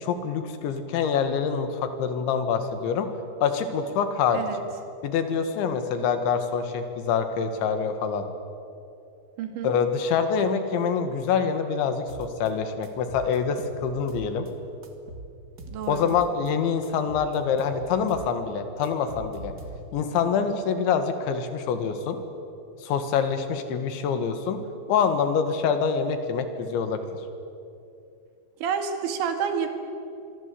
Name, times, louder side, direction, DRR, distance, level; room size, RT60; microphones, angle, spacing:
voice 1, 0.0-3.1 3.4-4.5 5.0-8.3 9.6-14.5 15.9-19.5 19.9-22.2 22.8-24.6 24.9-27.0, left 6 dB, 90° left, 8 dB, 4.2 m, -25 dB
voice 2, 9.4-9.7 15.7-16.2 28.6-29.7, right 7 dB, 85° right, 6 dB, 4.4 m, -29 dB
sound 1, 12.1-12.5 12.8-14.5 14.8-16.5 16.8-18.3 18.6-20.1, right 2 dB, 40° right, 1.4 m, -42 dB
26.0 x 22.5 x 8.5 m, 2.6 s
omnidirectional pair, 5.1 m